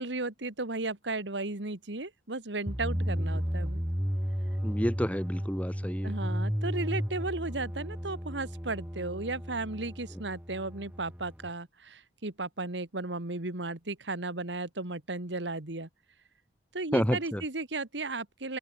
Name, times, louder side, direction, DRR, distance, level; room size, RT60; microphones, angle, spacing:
voice 1, 0.0-3.8 6.0-15.9 16.7-18.6, right 2 dB, 70° right, 2.1 m, -35 dB
sound 1, 2.7-11.5, equal, 10° right, 3.6 m, -33 dB
voice 2, 4.6-6.1 16.9-17.4, equal, 10° left, 2.6 m, -29 dB
open air
head